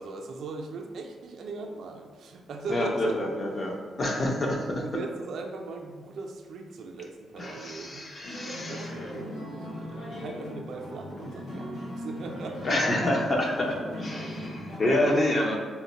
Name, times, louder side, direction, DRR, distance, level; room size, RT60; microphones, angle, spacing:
voice 1, 0.0-3.2 4.8-8.1 8.4-13.0 14.4-14.5 15.3-15.6, right 3 dB, 65° right, 3 dB, 0.4 m, -39 dB
voice 2, 2.7-4.8 7.4-9.0 12.6-15.6, left 1 dB, 30° left, 1 dB, 0.5 m, -28 dB
sound 1, 8.2-14.8, equal, 85° left, 1.2 m, -38 dB
4.2 x 2.1 x 4.0 m, 1.5 s
wide cardioid pair, 170°, 0 cm